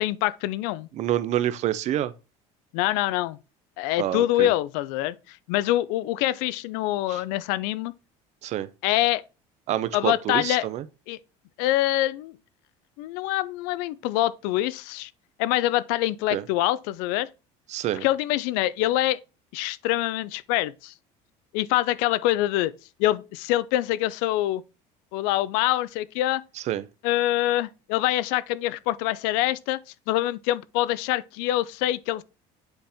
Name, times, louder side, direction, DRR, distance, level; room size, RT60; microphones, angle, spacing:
voice 1, 0.0-0.9 2.7-3.4 3.8-7.9 8.8-9.2 9.9-10.6 11.1-11.2 11.6-12.4 13.0-15.1 15.4-17.3 18.0-19.2 19.5-20.9 21.5-22.7 23.0-24.6 25.1-26.4 27.0-29.8 30.1-32.2, left 15 dB, 85° left, 0.4 m, -25 dB
voice 2, 0.9-2.1 4.0-4.5 7.1-7.2 8.4-8.7 9.7-10.8 16.3-16.4 17.7-18.0 26.7-26.8, right 12 dB, 50° right, 0.5 m, -27 dB
7.9 x 4.3 x 3.4 m
cardioid pair, 120°, 15 cm